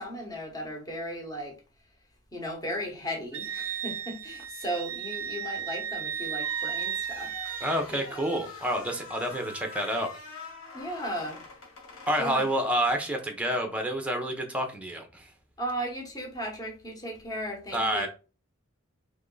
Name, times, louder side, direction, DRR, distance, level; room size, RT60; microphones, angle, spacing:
voice 1, 0.0-1.6 2.3-7.6 7.9-8.1 10.7-11.4 12.2-12.5 15.6-18.1, equal, 20° left, 1.2 m, -36 dB
Wind instrument woodwind instrument, 3.3-7.8, right 9 dB, 75° right, 0.4 m, -34 dB
sound 1, 6.3-13.3, left 4 dB, 85° left, 1.3 m, -45 dB
voice 2, 7.6-10.2 12.1-15.3 17.7-18.1, equal, 5° right, 0.8 m, -28 dB
3.6 x 3.0 x 3.8 m
head